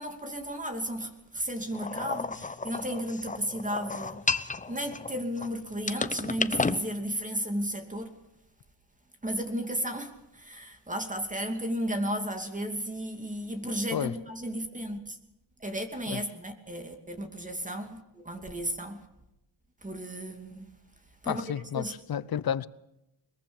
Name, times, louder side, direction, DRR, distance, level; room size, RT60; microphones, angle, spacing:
voice 1, 0.0-4.3 4.7-8.2 9.2-15.2 15.6-19.0 19.8-20.7 21.2-21.4 21.7-21.9, equal, 15° right, 2.7 m, -34 dB
sound 1, 1.7-5.5 5.9-6.8, left 4 dB, 15° left, 0.8 m, -32 dB
voice 2, 21.3-22.7, left 9 dB, 50° left, 0.9 m, -31 dB
22.0 x 22.0 x 7.2 m
wide cardioid pair, 130°, 46 cm